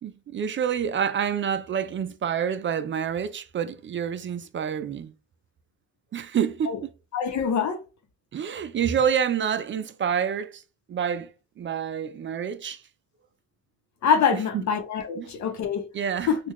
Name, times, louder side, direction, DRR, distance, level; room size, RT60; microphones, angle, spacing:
voice 1, 0.0-5.1 6.1-6.9 8.3-10.6 10.9-11.3 11.6-12.8 14.5-14.6 15.2-15.3 15.9-16.3, right 8 dB, 40° right, 0.4 m, -27 dB
voice 2, 7.1-7.8 14.0-15.9 16.3-16.4, left 6 dB, 70° left, 0.9 m, -24 dB
3.7 x 2.4 x 3.1 m
cardioid pair, 90°, 30 cm